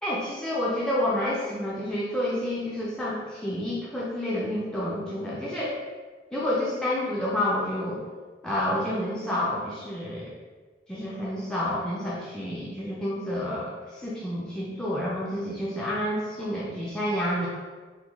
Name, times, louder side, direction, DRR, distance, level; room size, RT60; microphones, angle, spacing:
voice 1, 0.0-5.8 6.3-8.0 8.4-10.3 10.9-17.5, left 1 dB, 5° left, -7 dB, 0.4 m, -29 dB
3.0 x 2.2 x 3.4 m, 1.4 s
head